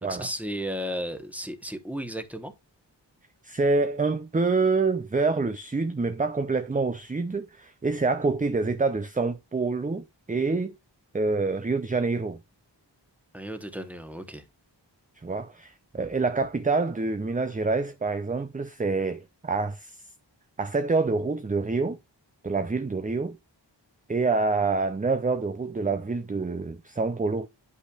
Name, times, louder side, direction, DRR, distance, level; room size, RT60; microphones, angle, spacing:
voice 1, 0.1-2.5 13.3-14.4, equal, 5° right, 1.0 m, -34 dB
voice 2, 3.4-10.7 11.1-12.4 15.2-20.0 20.6-22.0 22.4-23.4 24.1-27.5, right 3 dB, 20° right, 0.4 m, -26 dB
10.0 x 5.6 x 2.4 m
wide cardioid pair, 45°, 44 cm